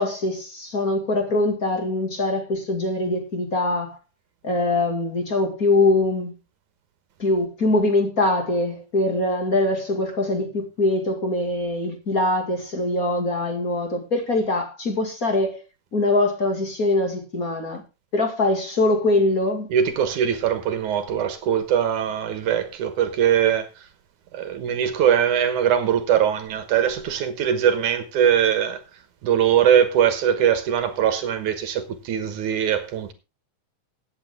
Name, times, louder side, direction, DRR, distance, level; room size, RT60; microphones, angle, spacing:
voice 1, 0.0-4.0 4.4-6.3 7.2-15.6 15.9-17.8 18.1-19.7, left 2 dB, 30° left, 2.2 m, -23 dB
voice 2, 19.7-23.7 24.3-28.8 29.2-33.1, right 9 dB, 70° right, 2.7 m, -21 dB
16.0 x 8.8 x 3.6 m
omnidirectional pair, 3.7 m